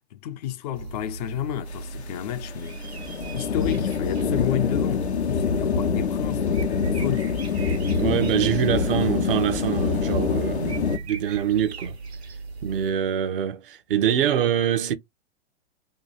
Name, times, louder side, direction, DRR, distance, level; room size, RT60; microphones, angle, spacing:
voice 1, 0.1-3.0 3.3-7.4, left 12 dB, 40° left, 0.5 m, -31 dB
sound 1, 0.7-12.9, right 4 dB, 75° right, 1.4 m, -38 dB
sound 2, 1.7-11.0, left 5 dB, 85° left, 0.7 m, -25 dB
voice 2, 8.0-12.0 12.6-14.9, right 9 dB, 55° right, 0.8 m, -24 dB
2.9 x 2.3 x 4.0 m
figure-of-eight pair, 105°, 32 cm